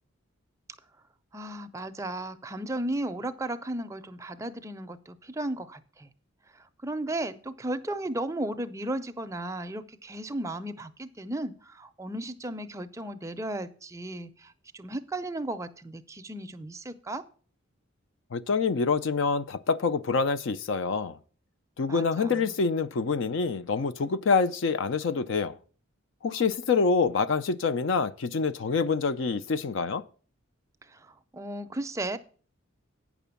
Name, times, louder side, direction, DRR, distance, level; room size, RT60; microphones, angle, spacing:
voice 1, 1.3-6.1 6.5-17.2 21.9-22.5 30.9-32.2, right 1 dB, 15° right, 0.5 m, -35 dB
voice 2, 18.3-21.2 21.8-25.6 26.2-30.0, left 4 dB, 65° left, 0.4 m, -26 dB
9.1 x 6.0 x 6.9 m
head